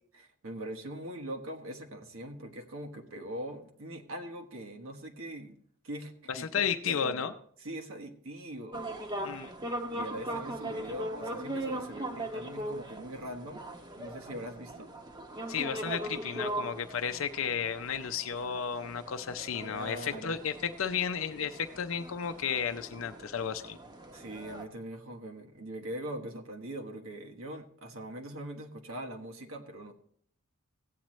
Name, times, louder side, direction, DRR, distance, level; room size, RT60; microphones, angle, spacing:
voice 1, 0.1-5.6 5.8-7.3 7.6-8.8 9.9-13.6 14.0-14.9 19.6-20.4 24.1-29.9, right 1 dB, 85° right, 3 dB, 1.3 m, -42 dB
voice 2, 6.3-7.3 9.2-9.5 15.5-23.8, left 7 dB, 75° left, 8 dB, 0.6 m, -33 dB
sound 1, 8.7-24.7, right 1 dB, 20° right, 0.9 m, -40 dB
15.5 x 8.8 x 3.1 m, 0.63 s
head